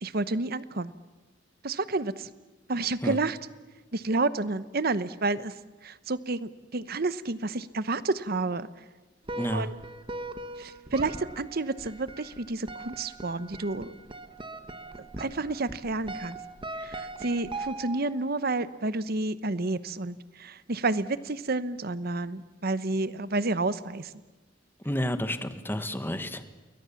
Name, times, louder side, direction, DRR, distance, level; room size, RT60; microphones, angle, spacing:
voice 1, 0.0-0.9 1.6-2.3 2.7-3.4 3.9-5.5 5.8-8.7 9.5-9.7 10.6-13.9 15.2-16.4 16.8-24.1, right 3 dB, 50° right, 15 dB, 0.9 m, -30 dB
sound 1, 9.2-18.2, right 2 dB, 25° right, 1.2 m, -40 dB
voice 2, 9.4-9.7 24.8-26.5, equal, 10° left, 10 dB, 1.4 m, -30 dB
29.5 x 21.5 x 7.2 m, 1.2 s
head